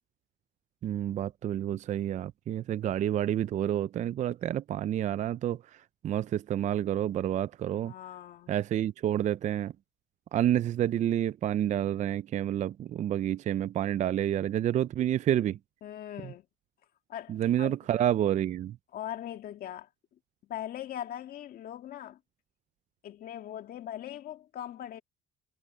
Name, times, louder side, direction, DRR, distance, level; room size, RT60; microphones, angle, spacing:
voice 1, 0.8-7.9 8.5-9.7 10.3-15.6 17.3-18.8, right 11 dB, 45° right, 0.4 m, -29 dB
voice 2, 7.8-8.5 15.8-16.5 17.1-17.7 18.9-19.9 20.4-22.2 23.0-25.0, left 11 dB, 60° left, 2.0 m, -40 dB
cardioid pair, 110°, 17 cm